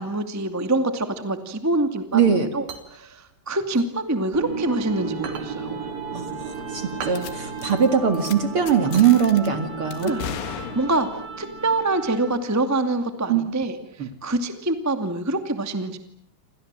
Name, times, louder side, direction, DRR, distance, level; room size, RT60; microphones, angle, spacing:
voice 1, 0.0-5.9 10.0-16.0, right 2 dB, 10° right, 8 dB, 0.9 m, -26 dB
voice 2, 2.1-2.5 6.1-10.1 13.3-13.4 14.0-14.1, right 7 dB, 45° right, 8 dB, 2.1 m, -21 dB
sound 1, 2.6-4.7 5.1-9.8, right 7 dB, 75° right, 5.1 m, -40 dB
sound 2, 4.3-12.5, right 4 dB, 25° right, 4.2 m, -34 dB
sound 3, 7.1-7.3 7.6-7.8 8.1-8.3 8.7-9.5 9.9-11.2, left 9 dB, 80° left, 4.0 m, -35 dB
29.0 x 27.0 x 7.6 m, 0.63 s
omnidirectional pair, 4.9 m